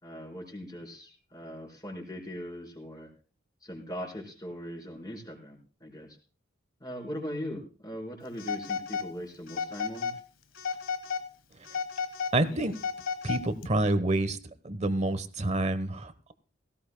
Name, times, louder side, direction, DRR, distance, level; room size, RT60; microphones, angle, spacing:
voice 1, 0.0-3.1 3.6-6.2 6.8-10.1, equal, 20° left, -1 dB, 4.3 m, -40 dB
Telephone, 8.4-9.1 9.5-10.2 10.6-11.3 11.6-13.7, left 5 dB, 80° left, 1.4 m, -34 dB
voice 2, 12.3-12.7 13.2-14.4 14.6-16.3, right 2 dB, 35° right, 13 dB, 1.0 m, -28 dB
17.5 x 17.0 x 2.2 m, 0.37 s
head